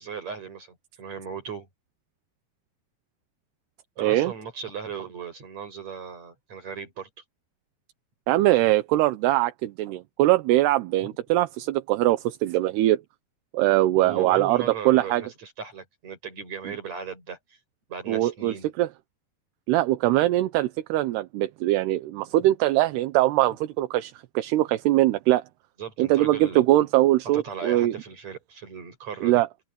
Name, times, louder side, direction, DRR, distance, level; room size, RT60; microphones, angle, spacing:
voice 1, 0.0-1.7 4.0-7.1 13.9-17.6 17.9-18.7 25.8-26.6 27.3-29.4, right 6 dB, 40° right, 8.0 m, -37 dB
voice 2, 4.0-4.3 8.3-13.0 13.5-15.2 18.1-18.9 19.7-25.4 26.0-27.9 29.2-29.5, right 16 dB, 80° right, 2.9 m, -22 dB
omnidirectional pair, 4.7 m